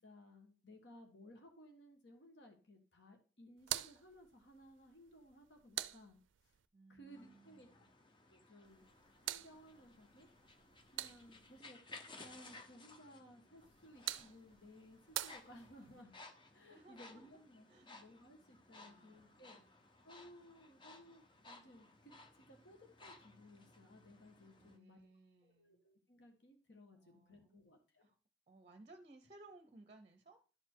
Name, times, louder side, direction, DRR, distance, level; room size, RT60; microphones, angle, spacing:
voice 1, 0.0-6.2 6.4-6.6 6.9-7.7 8.3-8.8 9.2-10.3 10.9-11.8 12.2-16.1 16.5-19.6 20.0-25.1 25.4-28.1, equal, 65° left, 3 dB, 1.5 m, -60 dB
sound 1, 3.6-6.7 8.6-11.6 13.6-16.0, right 14 dB, 75° right, 0.4 m, -47 dB
voice 2, 6.7-7.9 16.7-17.3 17.7-17.9 18.7-19.7 24.6-25.9 26.9-27.6 28.0-28.1 28.5-30.4, right 2 dB, 30° right, 8 dB, 0.7 m, -62 dB
sound 2, 7.1-24.8, left 2 dB, 25° left, 0.7 m, -59 dB
12.0 x 4.3 x 4.6 m, 0.35 s
head